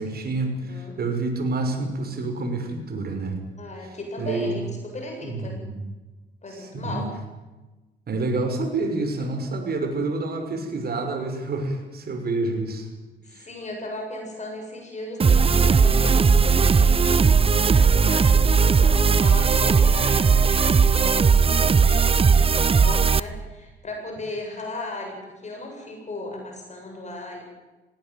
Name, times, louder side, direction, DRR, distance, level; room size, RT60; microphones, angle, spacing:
voice 1, 0.0-3.4 3.8-4.6 5.2-5.8 6.5-7.1 8.1-12.9 13.3-13.5, right 2 dB, 50° right, 5 dB, 6.2 m, -28 dB
voice 2, 0.6-1.0 3.6-5.6 6.4-7.1 13.2-27.4, left 2 dB, 35° left, 1 dB, 7.6 m, -36 dB
sound 1, 15.2-23.2, right 5 dB, 30° right, 0.8 m, -18 dB
20.0 x 18.0 x 9.4 m, 1.2 s
cardioid pair, 90°, 20 cm